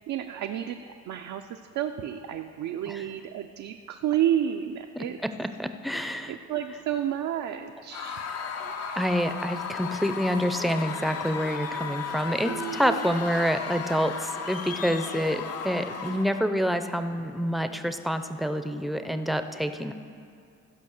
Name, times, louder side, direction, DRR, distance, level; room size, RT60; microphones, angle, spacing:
voice 1, 0.1-5.2 6.3-8.2 12.4-13.1 16.1-16.2, right 10 dB, 70° right, 4 dB, 0.6 m, -31 dB
voice 2, 5.4-6.4 8.6-19.9, equal, ahead, 8 dB, 0.6 m, -28 dB
Screaming / Cheering / Crowd, 7.9-16.5, left 6 dB, 55° left, 0.8 m, -35 dB
14.5 x 5.3 x 6.5 m, 2.5 s
cardioid pair, 90°, 30 cm